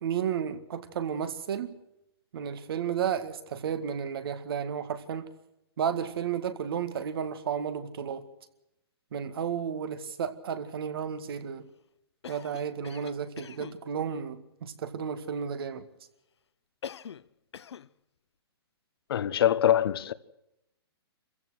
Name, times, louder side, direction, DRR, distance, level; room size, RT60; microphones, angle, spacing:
voice 1, 0.0-1.7 2.3-5.3 5.8-8.2 9.1-11.7 12.3-15.9, right 8 dB, 60° right, 2.0 m, -32 dB
Cough, 12.2-13.8 16.8-17.3 17.5-17.9, left 8 dB, 80° left, 0.8 m, -43 dB
voice 2, 19.1-20.1, left 10 dB, 60° left, 1.1 m, -24 dB
27.0 x 15.5 x 6.4 m
hypercardioid pair, 145°, 14 cm